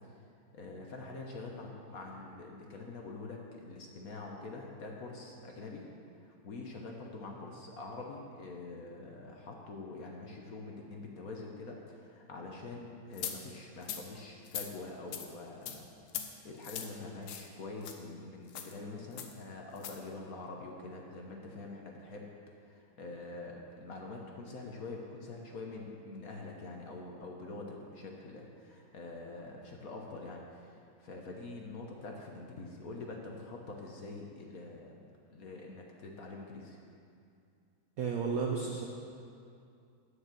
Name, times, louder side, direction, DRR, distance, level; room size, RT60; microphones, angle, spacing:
voice 1, 0.5-5.8 6.2-15.9 16.4-22.3 22.6-35.0 35.3-36.8, left 3 dB, 55° left, 0 dB, 1.2 m, -45 dB
sound 1, 13.2-13.4 13.8-14.0 14.5-14.7 15.1-15.3 15.7-15.8 16.1-16.3 16.6-16.9 17.3-17.5 17.8-18.0 18.5-18.7 19.2-19.3 19.8-20.0, left 9 dB, 70° left, 1.4 m, -39 dB
voice 2, 38.0-38.9, right 5 dB, 65° right, 0 dB, 0.8 m, -32 dB
9.7 x 6.5 x 7.4 m, 2.5 s
omnidirectional pair, 2.3 m